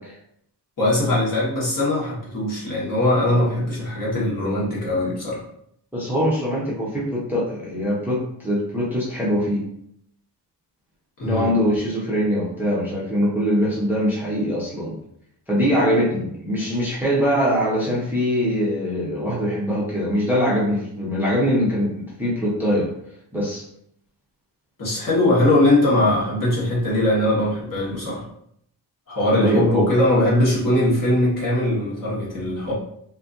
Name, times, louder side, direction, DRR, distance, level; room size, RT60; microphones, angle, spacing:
voice 1, 0.8-5.4 11.2-11.5 24.8-28.2 29.1-32.7, left 1 dB, 50° left, -6 dB, 1.2 m, -20 dB
voice 2, 5.9-9.6 11.2-15.0 15.5-22.9 23.3-23.6 29.4-29.9, equal, 5° right, -6 dB, 0.5 m, -22 dB
2.7 x 2.5 x 2.4 m, 0.70 s
wide cardioid pair, 145°, 42 cm